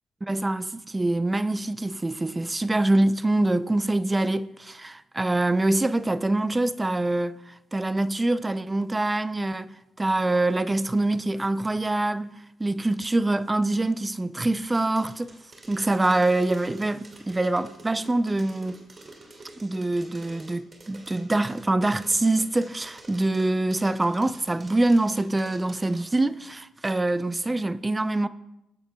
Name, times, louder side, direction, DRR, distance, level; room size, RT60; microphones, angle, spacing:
voice 1, 0.2-12.3 12.6-15.3 15.7-18.8 19.6-28.3, right 2 dB, 15° right, 0.4 m, -25 dB
sound 1, 14.7-26.2, right 2 dB, 35° right, 1.9 m, -49 dB
23.0 x 8.7 x 2.3 m
cardioid pair, 90°, 0 cm